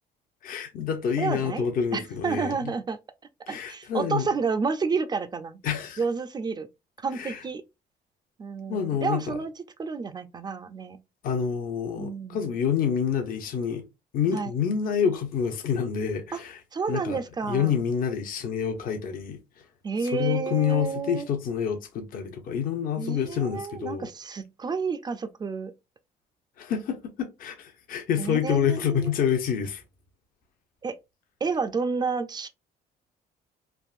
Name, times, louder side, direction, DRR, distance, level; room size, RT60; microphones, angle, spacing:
voice 1, 0.4-2.6 3.5-4.3 5.6-6.0 7.1-7.4 8.7-9.4 11.2-13.8 14.1-16.6 16.9-17.2 17.5-19.4 20.0-24.1 26.6-29.8, left 7 dB, 55° left, 0.7 m, -27 dB
voice 2, 1.2-1.7 1.9-3.0 3.5-5.6 6.0-6.7 7.0-7.6 8.4-9.5 9.8-11.0 12.0-12.5 14.3-14.5 16.3-16.4 16.7-17.8 19.8-21.3 23.0-25.7 28.2-29.1 30.8-31.0 31.4-32.5, right 5 dB, 25° right, 0.4 m, -30 dB
3.4 x 2.5 x 2.4 m
cardioid pair, 110°, 17 cm